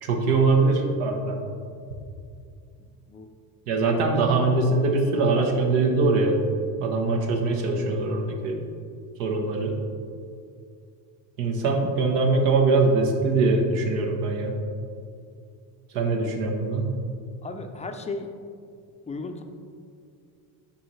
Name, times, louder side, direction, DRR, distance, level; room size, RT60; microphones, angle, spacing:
voice 1, 0.0-1.4 3.7-6.4 6.8-8.6 9.2-9.8 11.4-14.5 15.9-16.9, right 3 dB, 85° right, 1 dB, 1.1 m, -22 dB
voice 2, 17.4-18.3 19.1-19.4, left 3 dB, 15° left, 5 dB, 0.4 m, -35 dB
10.0 x 4.2 x 3.1 m, 2.3 s
supercardioid pair, 105°, 45 cm